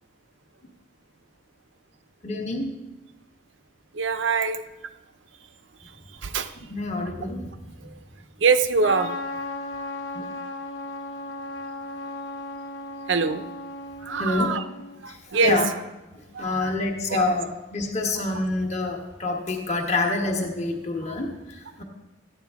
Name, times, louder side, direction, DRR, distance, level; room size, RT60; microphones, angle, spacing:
voice 1, 2.2-2.7 6.6-7.5 10.1-10.2 14.0-14.5 15.1-15.7 16.4-21.8, left 2 dB, 35° left, 1 dB, 1.3 m, -27 dB
voice 2, 4.0-4.6 6.2-6.5 8.4-9.1 13.1-13.4 14.0-14.6 15.0-15.6 16.3-16.7 17.1-17.3, right 4 dB, 70° right, 10 dB, 0.6 m, -23 dB
Trumpet, 8.8-15.0, left 2 dB, 65° left, 1.0 m, -35 dB
14.0 x 9.3 x 3.6 m, 1.0 s
head